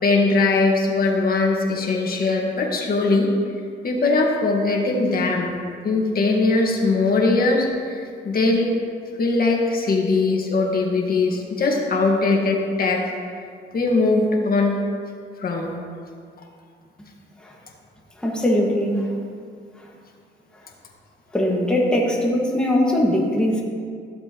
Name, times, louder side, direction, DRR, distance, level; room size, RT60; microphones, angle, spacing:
voice 1, 0.0-3.3 3.8-5.5 5.8-8.0 8.2-8.7 9.2-13.0 13.7-14.8 15.4-15.7, left 3 dB, 50° left, 0 dB, 1.7 m, -20 dB
voice 2, 18.2-19.1 19.8-19.9 21.3-23.6, left 1 dB, 5° left, -3 dB, 1.8 m, -21 dB
14.0 x 7.7 x 3.1 m, 2.2 s
cardioid pair, 90°, 20 cm